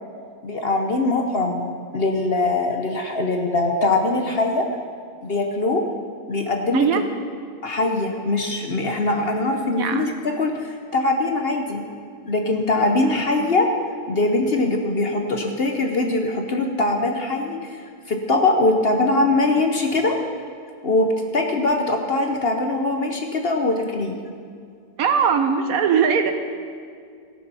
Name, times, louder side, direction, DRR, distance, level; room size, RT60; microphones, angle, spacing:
voice 1, 0.4-1.6 1.9-4.7 5.2-5.8 6.3-7.0 7.6-11.8 12.2-13.7 14.1-20.2 20.8-21.1 21.3-24.1, left 2 dB, 45° left, 3 dB, 0.9 m, -22 dB
voice 2, 6.7-7.0 9.8-10.1 25.0-26.3, right 7 dB, 70° right, 8 dB, 1.2 m, -20 dB
17.0 x 6.7 x 5.6 m, 2.2 s
omnidirectional pair, 1.6 m